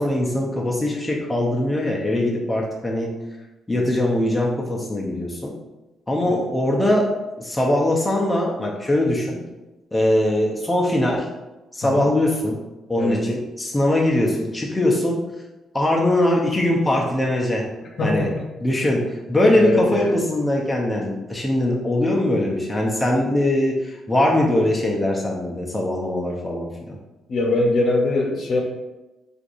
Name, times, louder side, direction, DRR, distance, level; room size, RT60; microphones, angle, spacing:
voice 1, 0.0-3.1 3.7-5.5 6.1-9.4 9.9-11.3 11.7-12.6 12.9-15.2 15.7-17.6 18.0-18.3 18.6-27.0, left 1 dB, 15° left, -2 dB, 0.6 m, -21 dB
voice 2, 11.8-12.1 13.0-13.3 18.0-18.4 19.6-20.2 27.3-28.6, left 2 dB, 55° left, 0 dB, 0.8 m, -22 dB
4.5 x 2.5 x 2.5 m, 1.1 s
cardioid pair, 90°, 0 cm